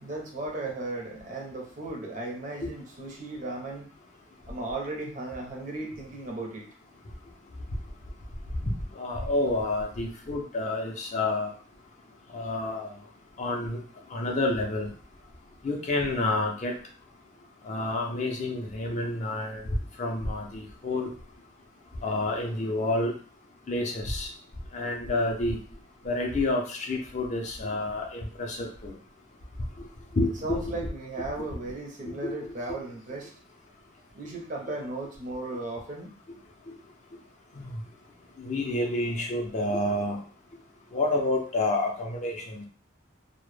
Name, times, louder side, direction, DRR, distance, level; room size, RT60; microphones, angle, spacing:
voice 1, 0.0-3.9 4.5-6.7 30.4-33.3 34.1-36.1, right 2 dB, 40° right, 0 dB, 0.5 m, -36 dB
voice 2, 8.6-11.5 12.3-12.9 13.4-13.8 14.1-14.9 15.6-16.7 17.6-19.6 20.0-21.1 22.0-23.1 23.7-24.3 24.7-25.6 26.0-28.9 29.8-29.9 30.1-30.8 32.1-32.3 37.6-37.8 38.4-40.2 40.9-42.6, left 2 dB, 35° left, 1 dB, 0.4 m, -29 dB
2.0 x 2.0 x 3.1 m, 0.43 s
head